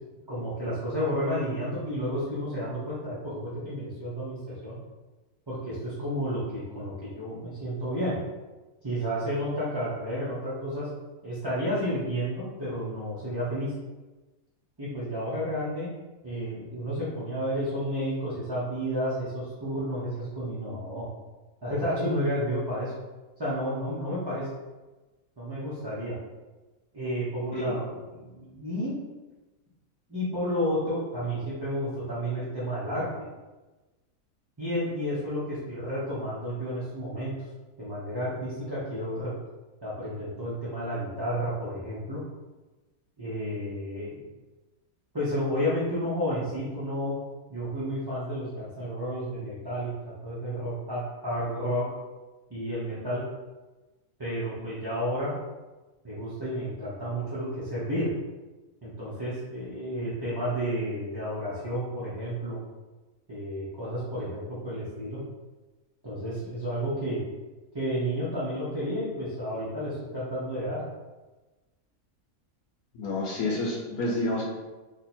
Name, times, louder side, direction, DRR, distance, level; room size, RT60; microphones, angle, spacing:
voice 1, 0.3-4.8 5.5-8.2 8.8-10.9 11.2-13.7 14.8-15.9 16.2-21.1 21.6-22.9 23.4-24.5 25.4-26.2 26.9-27.9 28.1-29.0 30.1-33.1 34.6-37.3 37.8-39.3 39.8-42.2 43.2-44.2 45.1-47.2 47.5-49.9 50.2-51.9 52.5-53.2 54.2-55.3 56.0-58.1 58.8-62.6 63.3-65.2 66.0-67.2 67.7-70.8, equal, 20° right, -10 dB, 0.7 m, -31 dB
voice 2, 72.9-74.4, left 2 dB, 85° left, -3 dB, 1.2 m, -29 dB
2.9 x 2.7 x 4.3 m, 1.2 s
omnidirectional pair, 1.5 m